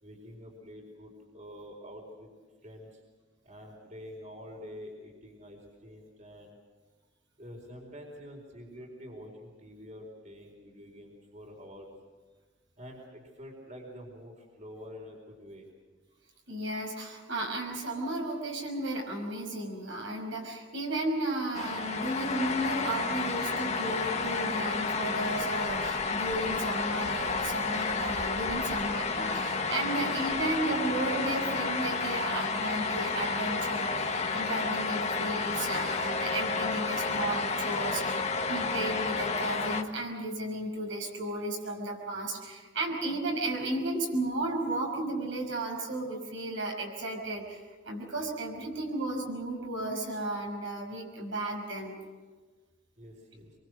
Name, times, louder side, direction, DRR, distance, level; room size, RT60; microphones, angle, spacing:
voice 1, 0.0-2.3 2.6-3.0 3.4-6.5 7.4-11.9 12.8-15.7 53.0-53.5, equal, 40° right, 1 dB, 4.4 m, -47 dB
voice 2, 16.5-38.2 38.5-47.6 47.8-52.0, right 1 dB, 70° right, 1 dB, 5.6 m, -34 dB
sound 1, 21.5-39.8, left 4 dB, 35° left, 1.3 m, -31 dB
25.5 x 23.5 x 6.4 m, 1.4 s
head